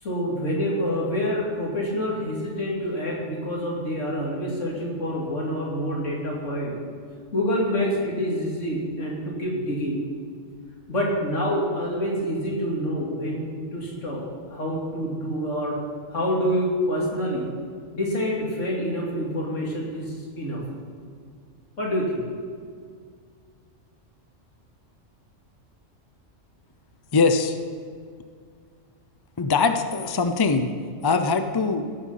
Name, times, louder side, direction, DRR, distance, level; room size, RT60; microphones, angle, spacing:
voice 1, 0.0-6.7 7.3-10.0 10.9-14.2 14.5-15.8 16.1-17.5 17.9-20.6 21.8-22.2, equal, 75° left, -3 dB, 3.1 m, -27 dB
voice 2, 27.1-27.6 29.4-30.7 31.0-31.8, left 4 dB, 25° left, 8 dB, 0.5 m, -22 dB
16.0 x 8.7 x 5.7 m, 2.1 s
omnidirectional pair, 1.3 m